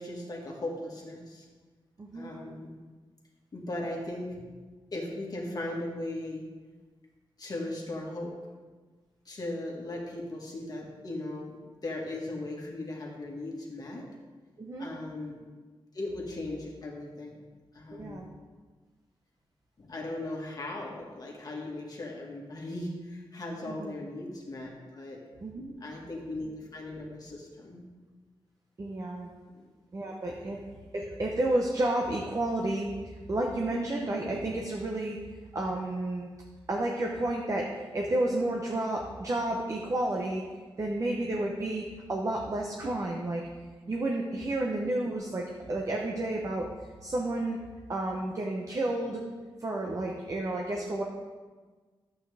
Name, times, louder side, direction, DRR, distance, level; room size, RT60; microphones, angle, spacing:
voice 1, 0.0-1.5 2.1-2.7 3.5-4.4 4.9-6.5 7.4-8.3 9.2-14.1 14.8-15.5 15.9-17.4 17.7-18.2 19.8-25.2 25.8-27.8 29.5-29.6, left 1 dB, 45° left, -1 dB, 1.7 m, -38 dB
voice 2, 2.0-2.3 14.6-14.9 17.9-18.3 23.7-23.9 25.4-25.7 28.8-29.3 29.9-30.6 30.9-35.2 35.5-36.3 36.7-37.7 37.9-40.4 40.8-43.4 43.9-46.7 47.0-47.6 47.9-49.2 49.6-51.0, right 1 dB, 40° right, 0 dB, 0.9 m, -31 dB
11.5 x 8.0 x 3.5 m, 1.4 s
wide cardioid pair, 155°, 9 cm